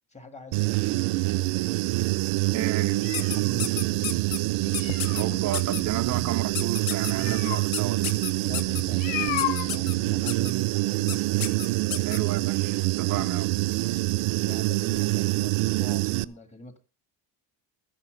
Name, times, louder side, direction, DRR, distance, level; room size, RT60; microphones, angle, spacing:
voice 1, 0.1-1.9 2.5-2.8 3.1-4.2 8.4-12.1 13.1-13.3 13.7-16.8, left 2 dB, 15° left, 1.8 m, -46 dB
Human voice / Buzz, 0.5-16.2, right 20 dB, 90° right, 0.7 m, -26 dB
sound 1, 0.9-10.4, left 14 dB, 80° left, 0.9 m, -37 dB
voice 2, 2.5-3.0 5.1-8.1 12.0-13.5, right 12 dB, 40° right, 0.5 m, -32 dB
sound 2, 3.1-4.4 4.7-5.2 5.5-5.8 6.5-7.1 7.7-8.8 9.4-9.9 10.3-10.5 11.1-11.2 11.4-12.2, left 10 dB, 50° left, 1.1 m, -31 dB
13.5 x 10.0 x 5.0 m
cardioid pair, 170°, 45 cm